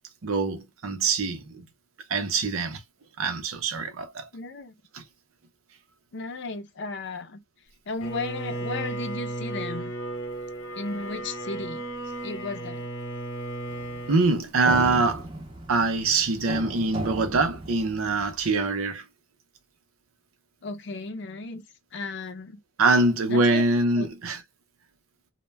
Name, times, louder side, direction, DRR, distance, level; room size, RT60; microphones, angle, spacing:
voice 1, 0.2-1.6 2.1-2.8 3.2-4.3 4.9-5.0 14.1-15.3 15.7-19.0 22.8-24.4, right 3 dB, 85° right, 0.6 m, -24 dB
voice 2, 4.3-4.7 6.1-7.4 7.9-9.9 10.7-11.8 12.2-12.9 20.6-21.6 21.9-22.6 23.3-23.6 24.0-24.1, left 3 dB, 55° left, 0.5 m, -35 dB
Bowed string instrument, 8.0-14.3, right 1 dB, 85° left, 0.9 m, -34 dB
sound 1, 13.7-18.5, right 1 dB, 25° right, 0.6 m, -37 dB
2.1 x 2.1 x 3.2 m
head